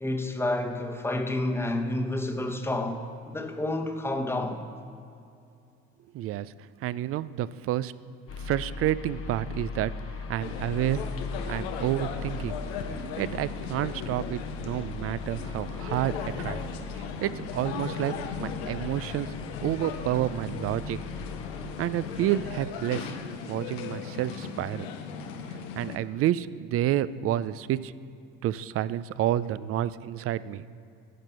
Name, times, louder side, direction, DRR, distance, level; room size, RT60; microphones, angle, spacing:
voice 1, 0.0-3.0 3.2-4.6, left 1 dB, 10° left, 4 dB, 1.0 m, -29 dB
voice 2, 6.1-7.9 8.4-9.9 10.3-11.0 11.5-12.6 13.2-16.6 16.9-19.3 19.6-21.0 21.8-23.1 23.5-24.9 25.8-27.9 28.4-30.7, right 13 dB, 50° right, 17 dB, 0.4 m, -29 dB
sound 1, 8.3-22.4, left 4 dB, 45° left, 0.9 m, -39 dB
sound 2, 10.4-26.0, left 6 dB, 90° left, 0.7 m, -37 dB
10.0 x 5.9 x 5.6 m, 2.5 s
supercardioid pair, 75°, 31 cm